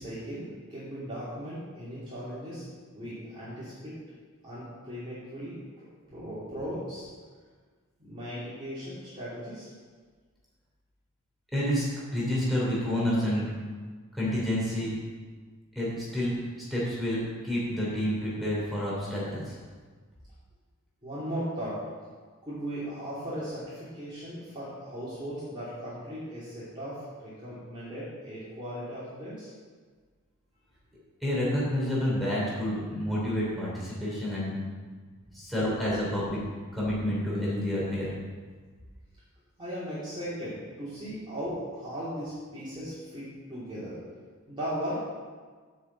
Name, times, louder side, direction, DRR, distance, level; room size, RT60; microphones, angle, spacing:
voice 1, 0.0-2.7 2.9-4.0 4.4-5.6 6.1-7.1 8.0-9.7 21.0-21.9 22.5-29.5 39.6-44.0 44.5-44.9, equal, 25° right, -11 dB, 2.8 m, -37 dB
voice 2, 11.5-11.8 12.1-13.5 14.1-14.9 15.7-16.3 16.7-19.6 31.2-34.5 35.3-36.4 36.7-38.1, equal, ahead, -8 dB, 3.2 m, -29 dB
7.2 x 6.6 x 7.8 m, 1.5 s
head